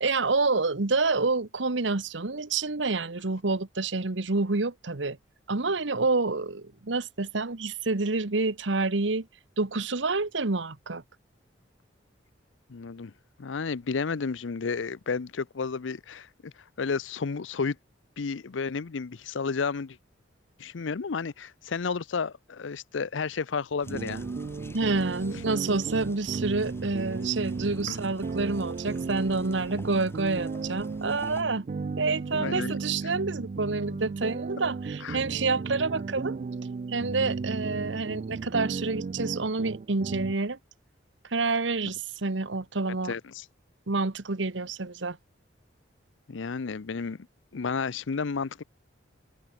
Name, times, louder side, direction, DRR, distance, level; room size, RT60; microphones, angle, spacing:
voice 1, 0.0-5.2 5.5-9.3 9.6-11.0 24.7-31.7 32.0-36.4 36.9-40.6 41.3-43.1 43.9-45.2, right 3 dB, 75° right, 1.3 m, -28 dB
voice 2, 12.7-13.1 13.4-16.5 16.8-17.8 18.2-20.0 20.6-24.2 27.9-28.0 32.4-32.8 35.0-35.2 43.1-43.4 46.3-47.3 47.5-48.6, left 5 dB, 80° left, 0.6 m, -32 dB
sound 1, 23.8-31.4, left 1 dB, 15° left, 5.9 m, -48 dB
sound 2, 23.9-40.3, right 4 dB, 40° right, 0.3 m, -35 dB
head